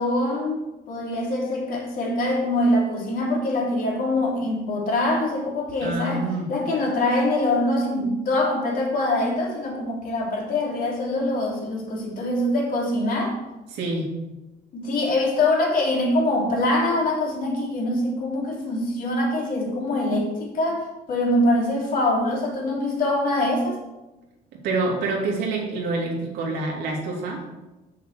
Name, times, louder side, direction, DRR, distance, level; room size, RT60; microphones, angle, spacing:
voice 1, 0.0-13.3 14.7-23.8, left 1 dB, 55° left, -2 dB, 3.1 m, -24 dB
voice 2, 5.8-6.5 13.7-14.1 24.5-27.4, right 3 dB, 80° right, -1 dB, 2.8 m, -27 dB
7.0 x 6.6 x 6.6 m, 1.0 s
cardioid pair, 110°, 17 cm